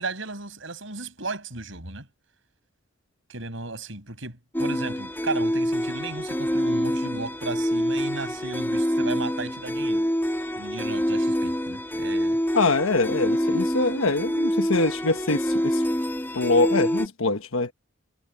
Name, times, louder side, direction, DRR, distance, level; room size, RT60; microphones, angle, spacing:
voice 1, 0.0-2.1 3.3-10.1 10.6-12.4, right 3 dB, 65° right, 7.0 m, -35 dB
sound 1, 4.5-17.1, equal, 10° left, 3.1 m, -26 dB
voice 2, 12.5-15.8 16.3-17.7, left 3 dB, 85° left, 1.3 m, -24 dB
head